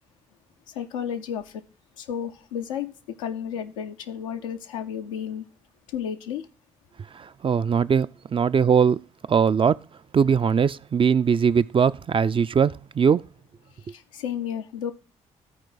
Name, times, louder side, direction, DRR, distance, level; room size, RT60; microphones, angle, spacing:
voice 1, 0.7-1.6 2.0-5.4 5.9-6.5 13.9-14.9, left 8 dB, 90° left, 0.6 m, -32 dB
voice 2, 7.2-9.0 9.3-9.8 10.1-13.2, right 6 dB, 35° right, 0.4 m, -21 dB
13.5 x 4.5 x 3.9 m
hypercardioid pair, 40°, 16 cm